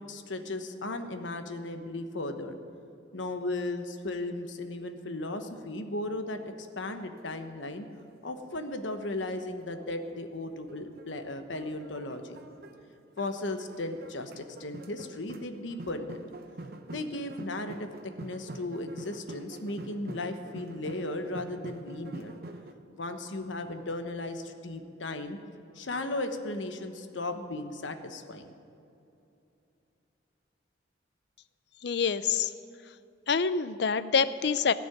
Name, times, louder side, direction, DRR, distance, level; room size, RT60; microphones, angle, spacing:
voice 1, 0.0-2.6 3.1-7.8 8.2-12.4 13.2-16.2 16.9-17.9 18.2-22.3 22.9-25.4 25.7-28.5, left 2 dB, 90° left, 7 dB, 1.1 m, -36 dB
sound 1, 6.7-10.2 10.7-22.7, right 2 dB, 55° right, 0.9 m, -46 dB
voice 2, 31.8-32.5 33.3-34.7, left 5 dB, 60° left, 14 dB, 0.5 m, -26 dB
17.0 x 6.1 x 9.5 m, 2.8 s
head